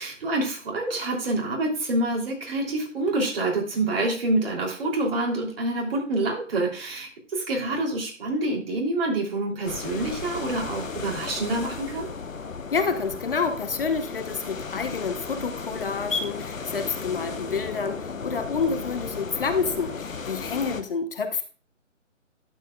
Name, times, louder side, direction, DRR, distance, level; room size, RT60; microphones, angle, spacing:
voice 1, 0.0-12.1, right 2 dB, 45° right, 0 dB, 3.1 m, -27 dB
sound 1, 9.7-20.8, left 5 dB, 85° left, 1.1 m, -35 dB
voice 2, 12.7-21.4, left 5 dB, 45° left, 8 dB, 1.0 m, -28 dB
11.5 x 8.6 x 2.3 m, 0.38 s
figure-of-eight pair, 155°, 39 cm